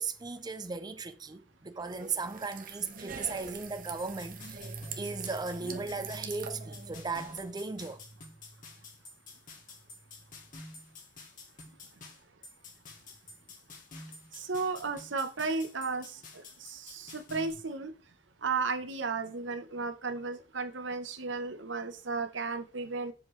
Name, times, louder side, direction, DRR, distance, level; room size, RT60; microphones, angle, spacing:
voice 1, 0.0-8.0, right 4 dB, 20° right, 0.5 m, -37 dB
sound 1, 1.8-7.4, right 5 dB, 50° right, 1.1 m, -45 dB
sound 2, 4.0-17.5, left 3 dB, 45° left, 2.3 m, -50 dB
voice 2, 14.3-17.9 18.4-23.1, right 4 dB, 80° right, 1.0 m, -34 dB
8.0 x 7.5 x 3.2 m
head